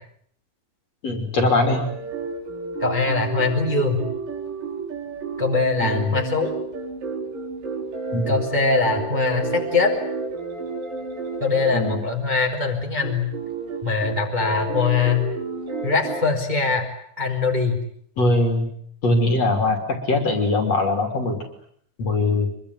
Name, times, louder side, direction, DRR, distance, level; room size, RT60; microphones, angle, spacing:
voice 1, 1.0-1.9 5.8-6.2 8.1-8.4 11.7-12.0 18.2-18.7 19.0-21.4 22.0-22.5, left 2 dB, 40° left, 5 dB, 3.8 m, -21 dB
sound 1, 1.7-12.1 13.0-16.2, right 3 dB, 50° right, 5.8 m, -31 dB
voice 2, 2.8-4.0 5.4-6.5 8.3-9.9 11.4-13.2 13.8-15.3 15.8-16.8 17.2-17.7, left 4 dB, 10° right, 2 dB, 3.0 m, -22 dB
25.0 x 23.5 x 9.7 m, 0.65 s
omnidirectional pair, 5.3 m